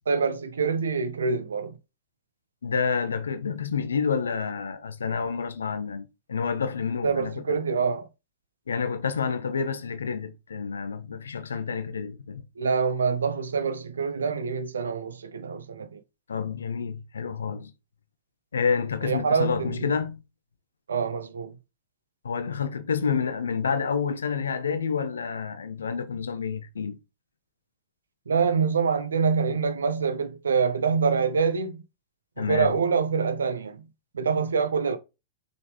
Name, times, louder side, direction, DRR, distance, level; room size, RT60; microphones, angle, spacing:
voice 1, 0.0-1.8 7.0-8.1 12.6-16.0 19.0-19.9 20.9-21.6 28.3-31.8 32.4-33.8 34.1-35.0, right 5 dB, 70° right, 1.3 m, -25 dB
voice 2, 2.6-7.6 8.7-12.5 16.3-17.7 18.5-20.2 22.2-27.0 32.4-32.8, left 6 dB, 70° left, 1.4 m, -29 dB
6.9 x 6.1 x 5.2 m
figure-of-eight pair, 100°, 0 cm